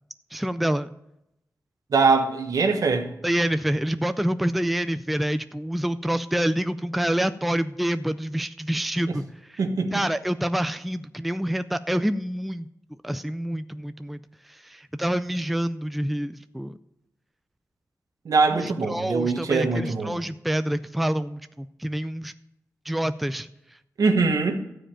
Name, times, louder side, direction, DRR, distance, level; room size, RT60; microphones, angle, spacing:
voice 1, 0.3-0.9 3.2-9.2 9.5-9.6 9.9-12.7 13.0-14.2 14.5-16.8 18.5-22.3 22.9-23.5, right 1 dB, ahead, 12 dB, 0.3 m, -27 dB
voice 2, 1.9-3.1 9.6-10.0 18.2-20.2 24.0-24.6, right 4 dB, 70° right, 4 dB, 1.3 m, -22 dB
13.5 x 4.9 x 8.8 m, 0.84 s
wide cardioid pair, 125°, 6 cm